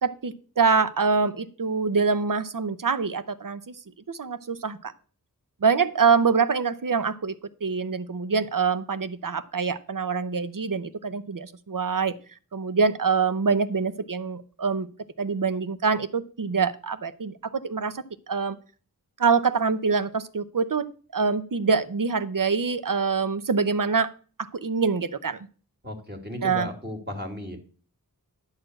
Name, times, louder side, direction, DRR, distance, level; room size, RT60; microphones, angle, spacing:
voice 1, 0.0-3.7 4.1-4.9 5.6-7.3 7.6-12.1 12.5-14.9 15.2-18.6 19.2-24.1 24.4-25.4 26.4-26.7, right 5 dB, 60° right, 13 dB, 0.8 m, -25 dB
voice 2, 25.8-27.6, left 1 dB, 25° right, 3 dB, 2.2 m, -35 dB
10.5 x 4.2 x 7.8 m, 0.40 s
wide cardioid pair, 55°, 37 cm